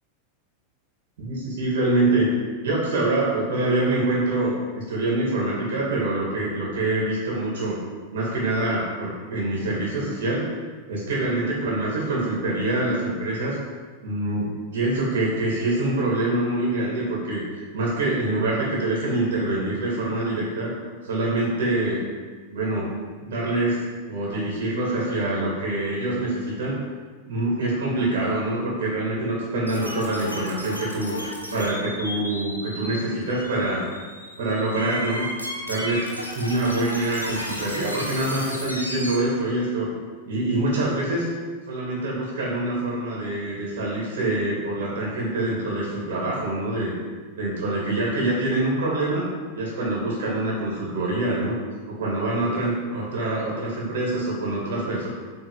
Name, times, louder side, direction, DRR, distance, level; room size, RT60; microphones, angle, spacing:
voice 1, 1.2-2.3 2.6-7.8 8.1-10.4 10.9-13.6 14.0-20.7 21.0-22.0 22.5-22.9 23.2-26.7 27.3-31.2 31.5-33.8 34.4-35.2 35.6-36.1 36.3-39.9 40.3-41.3 41.7-47.0 47.3-49.3 49.5-51.5 51.9-55.1, right 2 dB, 55° right, -4 dB, 2.5 m, -25 dB
sound 1, 29.7-39.2, equal, 85° left, 1.0 m, -34 dB
7.7 x 4.4 x 5.4 m, 1.5 s
figure-of-eight pair, 90°, 0 cm